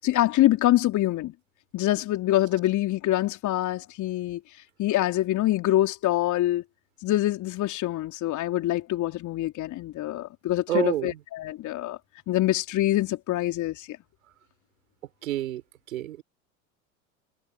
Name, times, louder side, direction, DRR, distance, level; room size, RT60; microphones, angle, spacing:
voice 1, 0.0-1.3 1.7-4.4 4.8-6.6 7.0-12.0 12.3-13.9, left 15 dB, 45° left, 3.6 m, -25 dB
voice 2, 10.7-11.2 15.2-15.6 15.9-16.2, right 12 dB, 75° right, 5.0 m, -28 dB
hypercardioid pair, 80°, 41 cm